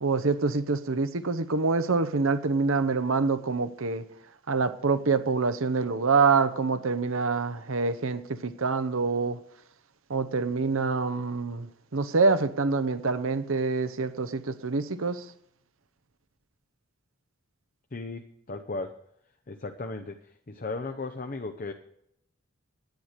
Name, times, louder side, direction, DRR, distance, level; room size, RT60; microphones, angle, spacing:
voice 1, 0.0-4.0 4.5-9.4 10.1-11.7 11.9-15.2, right 4 dB, 65° right, 12 dB, 0.8 m, -26 dB
voice 2, 17.9-19.0 19.5-21.7, left 3 dB, 40° left, 6 dB, 0.7 m, -36 dB
10.5 x 9.4 x 6.6 m, 0.74 s
head